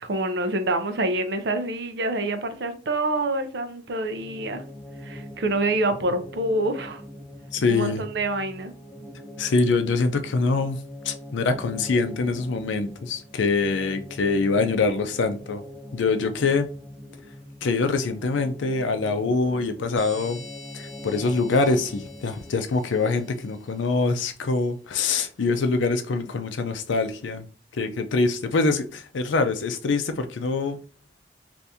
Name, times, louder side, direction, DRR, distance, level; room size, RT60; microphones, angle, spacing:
voice 1, 0.0-4.6 5.0-7.0 7.7-8.7, right 2 dB, 65° right, 0.5 m, -26 dB
sound 1, 4.1-22.9, left 1 dB, 10° left, 0.4 m, -43 dB
voice 2, 7.5-8.0 9.4-10.8 11.0-15.6 15.9-16.7 17.6-20.4 20.7-27.5 27.7-30.8, left 3 dB, 90° left, 0.5 m, -24 dB
sound 2, 20.0-24.2, left 3 dB, 60° left, 1.0 m, -47 dB
2.7 x 2.6 x 3.4 m
head